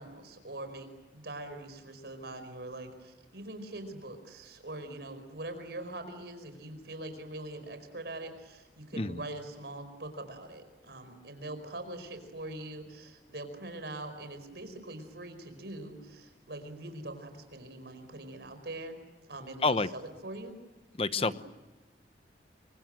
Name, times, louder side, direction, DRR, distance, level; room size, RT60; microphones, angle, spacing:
voice 1, 0.0-19.0 19.3-20.6 21.2-21.3, right 2 dB, 70° right, 9 dB, 4.8 m, -43 dB
voice 2, 21.0-21.4, left 3 dB, 35° left, 12 dB, 1.0 m, -28 dB
29.0 x 24.5 x 7.6 m, 1.1 s
head